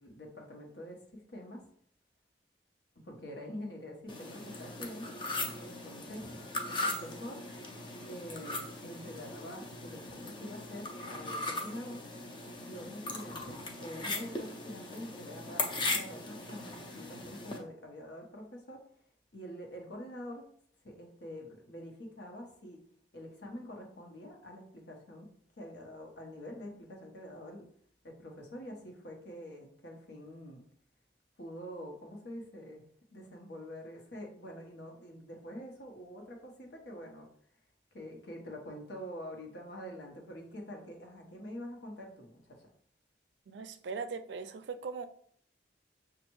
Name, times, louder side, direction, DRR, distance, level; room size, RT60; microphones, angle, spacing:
voice 1, 0.0-1.6 2.9-5.1 5.6-7.5 8.1-12.0 12.7-18.8 19.3-20.4 20.8-22.8 23.1-25.3 25.6-27.7 28.0-30.6 31.4-32.8 33.1-37.3 37.9-42.7, equal, 80° left, 1.0 m, -46 dB
sound 1, 4.1-17.6, left 2 dB, 25° left, 0.5 m, -39 dB
voice 2, 43.5-45.1, right 5 dB, 80° right, 0.4 m, -39 dB
6.3 x 2.4 x 3.0 m
head